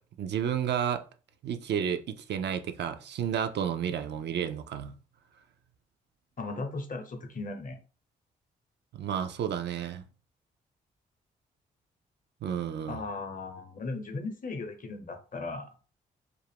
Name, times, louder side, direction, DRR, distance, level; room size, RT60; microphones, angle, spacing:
voice 1, 0.2-1.0 1.4-4.9 8.9-10.0 12.4-13.0, right 8 dB, 55° right, 0.4 m, -31 dB
voice 2, 6.4-7.8 12.9-15.7, left 3 dB, 40° left, 0.8 m, -37 dB
2.4 x 2.1 x 3.4 m
hypercardioid pair, 40°, 21 cm